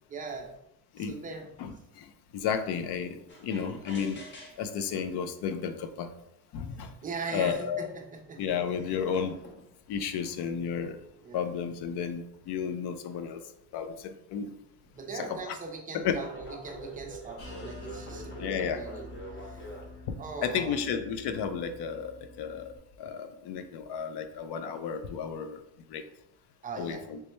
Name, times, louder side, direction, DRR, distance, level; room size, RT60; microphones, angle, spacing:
voice 1, 0.1-0.5 1.0-1.5 7.0-8.4 11.2-11.5 14.9-19.7 20.2-20.8 26.6-27.1, right 4 dB, 20° right, 3 dB, 0.4 m, -40 dB
voice 2, 1.6-2.1 2.3-4.2 4.6-6.1 6.5-6.9 7.3-7.9 8.4-9.4 9.9-11.0 11.3-13.4 13.7-14.5 15.1-15.5 15.9-16.1 18.4-18.8 20.4-22.7 23.0-25.6 25.9-26.0 26.8-27.2, left 7 dB, 65° left, 9 dB, 0.5 m, -32 dB
sound 1, 3.3-4.9 5.8-5.9 6.7-6.8 7.0-7.9 8.7-9.7 10.7-12.2 14.8-15.0 16.0-20.0, equal, 25° left, 0.7 m, -46 dB
sound 2, 17.4-22.8, left 2 dB, 85° left, 1.5 m, -47 dB
3.2 x 3.2 x 3.0 m, 0.81 s
cardioid pair, 150°, 43 cm